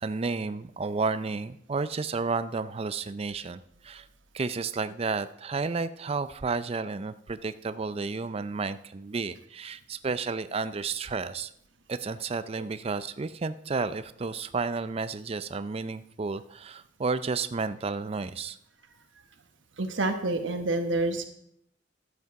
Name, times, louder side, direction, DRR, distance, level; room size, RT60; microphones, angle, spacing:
voice 1, 0.0-4.1 4.3-11.5 11.9-18.6, right 4 dB, 30° right, 13 dB, 0.4 m, -32 dB
voice 2, 19.8-21.3, right 2 dB, 70° right, 5 dB, 1.2 m, -28 dB
12.0 x 8.2 x 4.7 m, 0.72 s
head